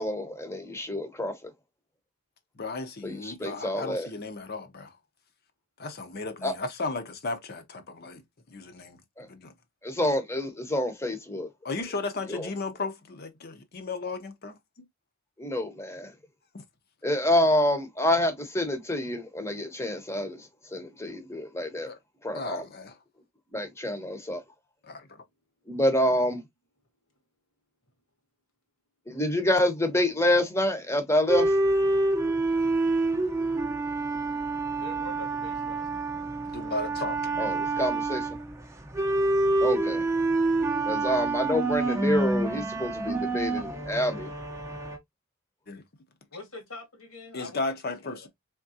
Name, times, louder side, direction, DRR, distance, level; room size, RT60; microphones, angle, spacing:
voice 1, 0.0-1.3 3.0-4.1 6.4-6.5 9.2-9.3 9.8-11.5 12.3-12.5 15.4-16.1 17.0-21.9 22.2-22.6 23.5-24.4 25.7-26.4 29.1-31.6 37.4-38.3 39.6-40.0 40.9-44.3, left 1 dB, 10° left, 0.8 m, -27 dB
voice 2, 2.6-5.0 5.8-8.2 8.5-9.5 11.6-14.5 16.5-16.6 21.8-22.0 22.3-23.0 24.8-25.2 36.5-37.5 45.7-45.8 47.3-48.3, left 3 dB, 45° left, 0.7 m, -35 dB
sound 1, 31.3-45.0, right 2 dB, 15° right, 0.6 m, -27 dB
voice 3, 34.8-36.1 46.3-47.7 48.0-48.3, left 2 dB, 85° left, 2.0 m, -44 dB
3.6 x 3.5 x 2.7 m
head